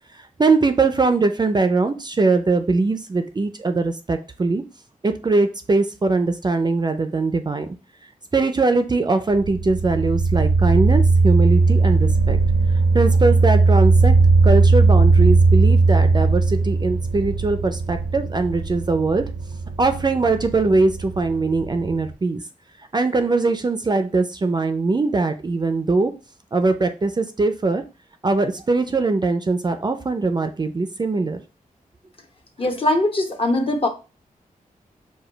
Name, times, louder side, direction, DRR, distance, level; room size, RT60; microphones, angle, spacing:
voice 1, 0.1-4.6 5.0-7.7 8.3-12.4 12.9-14.1 14.4-19.3 19.8-22.4 22.9-26.1 26.5-27.8 28.2-31.4, right 3 dB, 30° right, 8 dB, 0.4 m, -21 dB
sound 1, 9.3-22.1, right 3 dB, 85° right, 0.6 m, -18 dB
voice 2, 32.6-33.9, left 1 dB, 40° left, 4 dB, 0.8 m, -21 dB
4.9 x 2.2 x 4.4 m, 0.32 s
wide cardioid pair, 125°, 14 cm